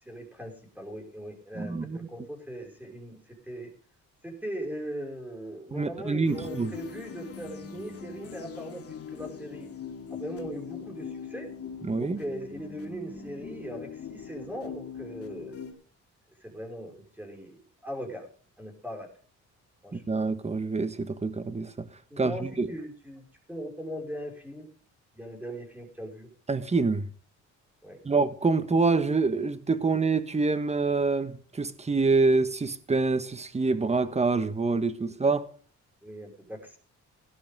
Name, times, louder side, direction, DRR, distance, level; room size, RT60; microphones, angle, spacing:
voice 1, 0.0-3.7 4.2-9.7 10.1-11.5 12.0-15.6 16.4-18.3 18.6-19.1 19.8-20.0 22.1-24.7 25.1-26.3 27.8-28.0 35.0-35.2 36.0-36.8, equal, 5° right, 5.2 m, -40 dB
voice 2, 1.5-2.1 5.7-6.7 11.8-12.2 19.9-21.7 22.2-22.7 26.5-27.1 28.0-35.4, right 3 dB, 20° right, 1.3 m, -26 dB
sound 1, 6.2-15.7, left 6 dB, 50° left, 2.4 m, -41 dB
17.0 x 12.0 x 3.6 m
cardioid pair, 90°, 30 cm